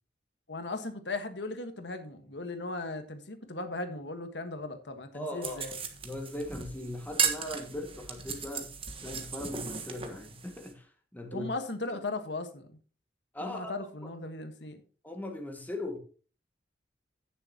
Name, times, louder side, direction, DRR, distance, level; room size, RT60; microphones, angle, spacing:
voice 1, 0.5-5.7 11.3-12.7 13.4-14.8, left 2 dB, 80° left, 1.5 m, -37 dB
voice 2, 5.1-5.7 6.0-8.7 9.0-11.5 11.9-12.0 13.3-13.7 14.0-14.1 15.0-16.0, left 1 dB, 10° left, 1.9 m, -39 dB
sound 1, 5.4-10.7, right 6 dB, 35° right, 1.4 m, -36 dB
16.5 x 7.0 x 2.9 m
head